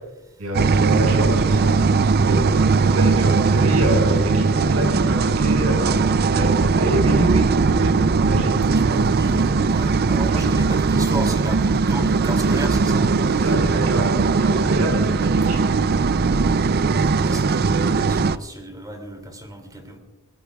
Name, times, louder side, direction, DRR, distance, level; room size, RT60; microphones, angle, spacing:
voice 1, 0.4-1.9 2.2-2.5 2.9-8.7 10.3-10.5 13.4-15.6, right 1 dB, 80° right, 2 dB, 5.8 m, -27 dB
sound 1, 0.5-18.4, right 4 dB, 45° right, 0.5 m, -19 dB
voice 2, 8.7-13.1 17.1-20.0, right 1 dB, 15° right, 5 dB, 2.7 m, -33 dB
23.5 x 18.0 x 2.4 m, 1.0 s
head